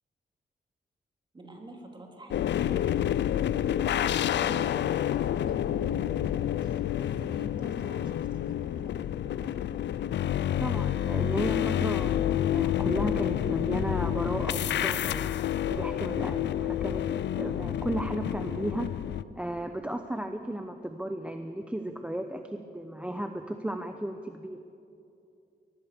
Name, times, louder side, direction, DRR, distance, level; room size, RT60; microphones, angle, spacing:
voice 1, 1.3-9.5, right 2 dB, 25° right, 1 dB, 3.7 m, -48 dB
sound 1, 2.3-19.2, left 11 dB, 90° left, 0.6 m, -29 dB
voice 2, 10.6-15.3 15.7-18.9 19.4-24.6, right 1 dB, 5° right, 6 dB, 0.9 m, -34 dB
22.5 x 19.5 x 7.0 m, 2.7 s
wide cardioid pair, 125°, 18 cm